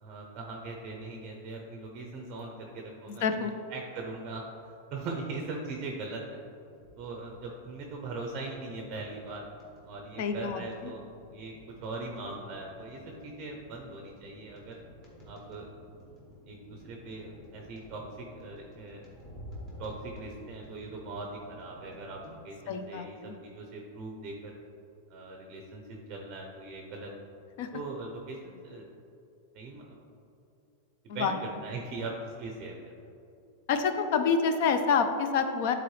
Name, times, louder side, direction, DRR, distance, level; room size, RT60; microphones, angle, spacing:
voice 1, 0.0-3.3 3.7-6.4 7.0-9.4 9.8-11.0 11.3-14.8 15.3-15.7 16.5-19.0 19.8-24.6 25.1-27.1 27.7-28.9 29.5-30.0 31.1-31.3 31.6-32.9, right 3 dB, 30° right, 1 dB, 0.6 m, -40 dB
voice 2, 3.1-3.5 10.2-10.9 22.7-23.4 27.6-27.7 31.1-31.3 33.7-35.7, left 5 dB, 45° left, 8 dB, 0.5 m, -28 dB
sound 1, 6.7-22.3, equal, 25° left, 1.6 m, -52 dB
11.0 x 4.1 x 3.2 m, 2.7 s
supercardioid pair, 175°, 0 cm